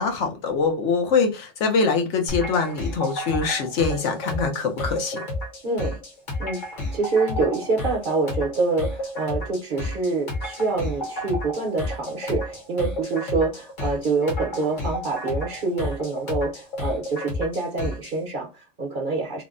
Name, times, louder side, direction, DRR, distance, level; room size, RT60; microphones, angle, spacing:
voice 1, 0.0-5.2, left 4 dB, 75° left, 1.0 m, -23 dB
sound 1, 2.3-18.2, left 1 dB, 45° left, 0.9 m, -31 dB
voice 2, 5.6-6.0 6.4-6.6 6.9-19.4, right 3 dB, 50° right, 0.8 m, -26 dB
3.3 x 2.1 x 2.4 m
omnidirectional pair, 1.3 m